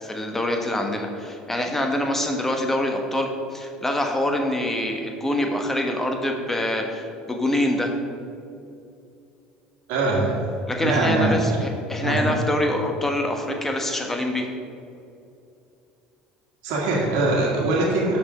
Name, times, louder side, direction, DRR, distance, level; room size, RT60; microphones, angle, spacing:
voice 1, 0.0-7.9 10.7-14.5, left 1 dB, 10° left, 3 dB, 1.1 m, -25 dB
voice 2, 9.9-10.4 10.8-11.5 12.0-12.2 16.6-18.2, right 2 dB, 75° right, -3 dB, 1.7 m, -22 dB
6.0 x 5.8 x 6.2 m, 2.6 s
supercardioid pair, 105°, 3 cm